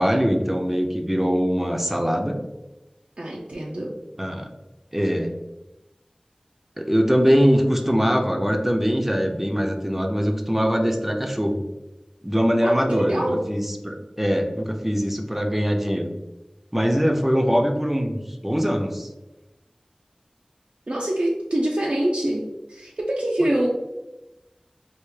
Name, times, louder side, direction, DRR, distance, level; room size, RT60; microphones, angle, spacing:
voice 1, 0.0-2.4 4.2-4.5 4.9-5.3 6.8-11.6 12.2-16.1 16.7-18.2 18.4-19.1, equal, 10° right, 3 dB, 0.4 m, -22 dB
voice 2, 3.2-4.0 12.6-13.4 20.9-23.7, right 1 dB, 70° right, -3 dB, 0.4 m, -25 dB
3.4 x 2.4 x 3.1 m, 1.0 s
wide cardioid pair, 45°, 2 cm